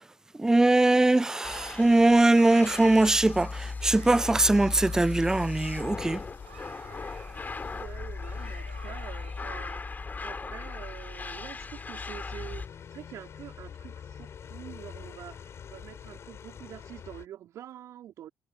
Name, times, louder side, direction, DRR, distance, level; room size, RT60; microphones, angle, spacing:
voice 1, 0.4-6.2, right 2 dB, 10° right, 0.3 m, -21 dB
sound 1, 1.4-12.7, left 4 dB, 30° left, 4.9 m, -37 dB
Yell / Screaming, 1.5-9.8, right 9 dB, 85° right, 6.0 m, -54 dB
sound 2, 5.1-17.3, left 8 dB, 50° left, 6.2 m, -48 dB
voice 2, 7.7-9.8 10.2-18.3, right 11 dB, 60° right, 3.5 m, -46 dB
figure-of-eight pair, 45°, 6 cm